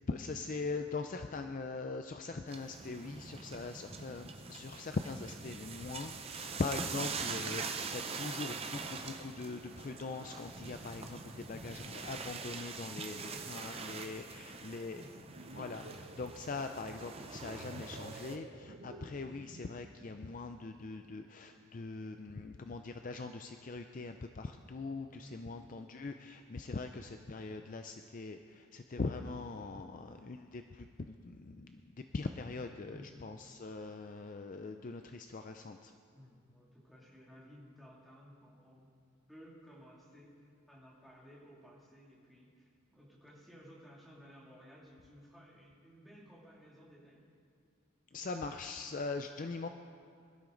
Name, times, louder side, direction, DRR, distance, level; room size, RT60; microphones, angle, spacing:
voice 1, 0.1-15.0 15.5-35.9 48.1-49.7, left 3 dB, 35° left, 7 dB, 0.4 m, -41 dB
sound 1, 2.5-18.4, right 5 dB, 25° right, 0.6 m, -44 dB
voice 2, 12.8-15.4 25.2-25.6 32.8-33.4 36.1-38.9 39.3-47.3, equal, ahead, -5 dB, 2.5 m, -57 dB
sound 2, 15.2-19.9, right 2 dB, 60° right, 1.1 m, -51 dB
21.5 x 12.5 x 3.9 m, 2.3 s
head